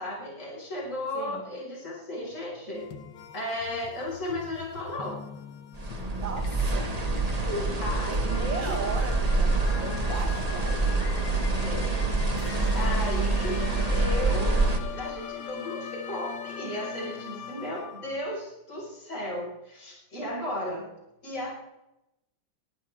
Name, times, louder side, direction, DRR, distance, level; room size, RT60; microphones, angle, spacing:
voice 1, 0.0-2.9 3.3-5.2 7.4-8.7 11.6-11.9 12.7-13.6 13.9-20.9 21.2-21.5, left 1 dB, 40° left, -4 dB, 5.9 m, -35 dB
voice 2, 1.1-1.5 6.1-7.0 8.1-11.0, right 4 dB, 80° right, 4 dB, 2.8 m, -37 dB
sound 1, 2.7-18.2, left 8 dB, 85° left, 1.9 m, -41 dB
sound 2, 5.7-14.8, right 3 dB, 20° right, 1.5 m, -26 dB
21.5 x 14.0 x 3.6 m, 0.89 s
omnidirectional pair, 2.1 m